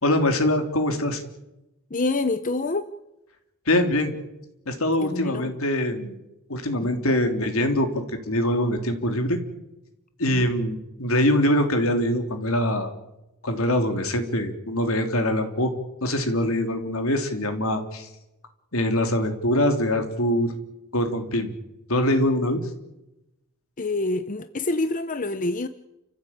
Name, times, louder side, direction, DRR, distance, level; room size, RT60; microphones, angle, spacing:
voice 1, 0.0-1.2 3.6-4.1 4.6-6.1 6.5-9.4 10.2-12.9 13.4-15.7 16.0-18.1 18.7-20.5 20.9-21.5 21.9-22.6, left 1 dB, 70° left, 3.3 m, -23 dB
voice 2, 1.9-2.9 5.0-5.5 7.0-7.1 23.8-25.7, left 2 dB, 35° left, 0.8 m, -26 dB
29.5 x 15.0 x 8.8 m
head